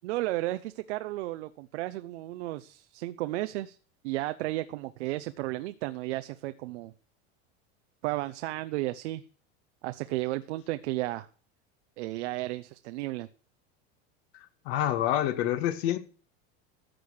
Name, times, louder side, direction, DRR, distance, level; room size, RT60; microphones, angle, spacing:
voice 1, 0.0-3.8 4.0-6.9 8.0-9.2 9.8-11.3 12.0-13.3, right 17 dB, 85° right, 1.0 m, -33 dB
voice 2, 14.7-16.0, left 12 dB, 65° left, 2.2 m, -27 dB
14.0 x 7.9 x 6.6 m
supercardioid pair, 135°, 33 cm